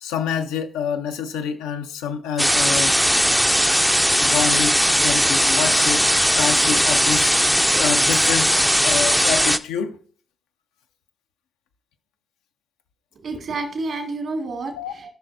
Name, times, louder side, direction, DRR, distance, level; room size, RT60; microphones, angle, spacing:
voice 1, 0.0-3.0 4.2-6.1 6.4-7.3 7.7-8.6 8.8-10.0 14.8-14.9, left 7 dB, 90° left, 0.5 m, -27 dB
sound 1, 2.4-9.6, equal, ahead, 0.5 m, -18 dB
voice 2, 13.2-15.1, right 3 dB, 65° right, 2.3 m, -29 dB
13.5 x 5.8 x 2.6 m
hypercardioid pair, 45°, 0 cm